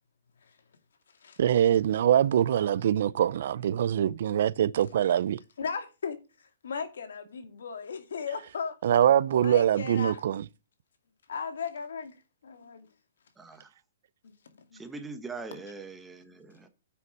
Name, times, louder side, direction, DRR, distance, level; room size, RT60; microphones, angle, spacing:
voice 1, 1.4-5.4 8.8-10.4, right 10 dB, 55° right, 0.5 m, -24 dB
voice 2, 5.6-8.8 9.4-10.2 11.3-12.2 12.4-12.9 14.2-14.8, left 6 dB, 80° left, 2.4 m, -37 dB
voice 3, 13.4-13.7 14.7-16.7, right 4 dB, 5° right, 1.2 m, -42 dB
9.5 x 5.7 x 7.2 m
hypercardioid pair, 165°, 0 cm